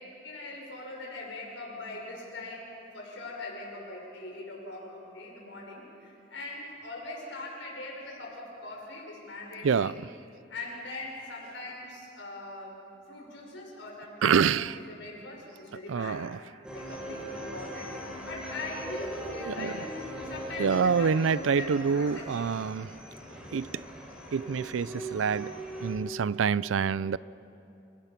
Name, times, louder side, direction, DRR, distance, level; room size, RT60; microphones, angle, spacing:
voice 1, 0.2-2.7 2.9-9.9 10.5-12.8 13.1-16.2 16.7-17.9 18.3-22.5, left 2 dB, 70° left, 5.9 m, -41 dB
voice 2, 9.6-10.0 14.2-14.8 15.9-16.4 19.5-19.7 20.6-22.9 23.5-23.9 24.3-25.5 25.8-27.2, right 6 dB, 80° right, 0.4 m, -26 dB
sound 1, 16.6-25.9, right 1 dB, 5° right, 4.1 m, -40 dB
29.5 x 18.0 x 5.9 m
head